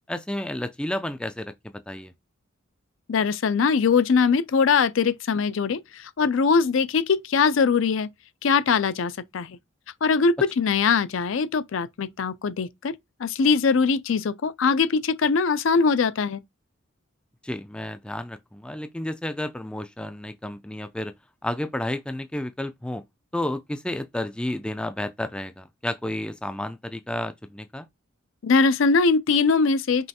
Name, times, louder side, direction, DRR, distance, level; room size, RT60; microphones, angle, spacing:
voice 1, 0.1-2.1 17.4-21.1 21.4-23.0 23.3-27.9, left 1 dB, 5° left, 0.3 m, -31 dB
voice 2, 3.1-8.1 8.4-9.6 10.0-12.9 13.2-16.4 28.4-30.1, left 5 dB, 65° left, 0.4 m, -22 dB
5.4 x 3.1 x 2.8 m
head